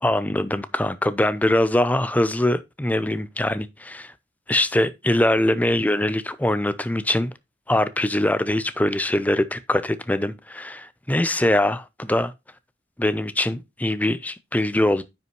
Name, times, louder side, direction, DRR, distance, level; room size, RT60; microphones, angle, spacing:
voice 1, 0.0-4.1 4.5-7.3 7.7-12.3 13.0-15.0, left 1 dB, 10° left, 0.5 m, -22 dB
9.6 x 5.4 x 3.0 m
head